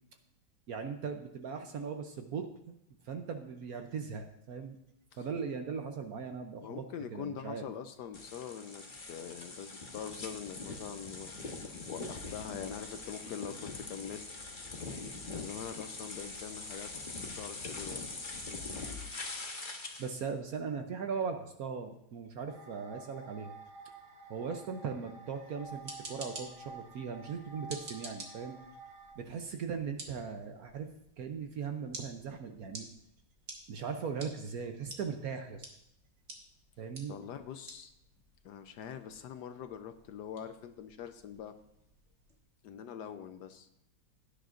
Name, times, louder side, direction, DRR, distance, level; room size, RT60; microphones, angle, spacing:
voice 1, 0.7-2.5 3.0-4.8 5.2-6.8 7.1-7.6 20.0-23.5 24.3-28.6 29.2-32.9 33.7-35.7 36.8-37.1, right 6 dB, 65° right, 6 dB, 1.0 m, -39 dB
voice 2, 6.6-11.3 11.9-14.3 15.3-16.9 17.4-18.0 37.1-37.9 38.4-41.6 42.6-43.7, left 8 dB, 70° left, 9 dB, 1.1 m, -43 dB
sound 1, 8.1-20.2, left 3 dB, 30° left, 1.1 m, -43 dB
sound 2, 22.5-29.1, right 4 dB, 85° right, 2.3 m, -51 dB
sound 3, 25.6-42.4, right 2 dB, 35° right, 1.8 m, -52 dB
16.5 x 9.9 x 2.5 m, 0.78 s
omnidirectional pair, 2.1 m